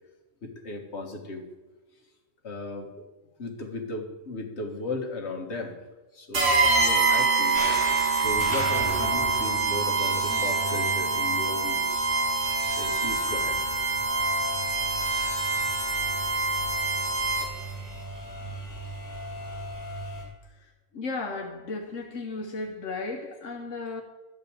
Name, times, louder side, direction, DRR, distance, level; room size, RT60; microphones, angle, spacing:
voice 1, 0.4-1.5 2.4-3.0 3.4-5.8 6.1-7.6 7.9-12.1 12.7-13.6, left 2 dB, 60° left, 2 dB, 1.8 m, -36 dB
sound 1, 6.3-17.7, right 3 dB, 70° right, 2.4 m, -25 dB
sound 2, 7.5-20.2, equal, 15° right, 3.4 m, -37 dB
voice 2, 20.9-24.0, left 3 dB, 85° left, 2 dB, 1.4 m, -34 dB
12.5 x 5.4 x 8.6 m, 1.2 s
omnidirectional pair, 1.3 m